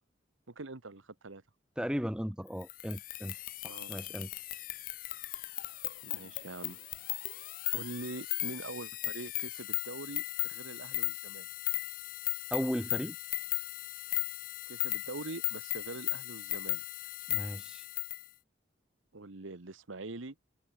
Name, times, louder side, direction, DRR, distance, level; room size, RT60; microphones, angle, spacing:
voice 1, 0.5-1.4 3.7-3.9 6.0-6.8 7.7-11.5 14.7-16.8 19.1-20.3, right 3 dB, 90° right, 1.3 m, -44 dB
voice 2, 1.8-3.3 3.6-4.3 12.5-13.2 17.3-17.8, equal, 5° right, 1.6 m, -36 dB
sound 1, 2.6-18.3, left 19 dB, 45° left, 0.3 m, -37 dB
head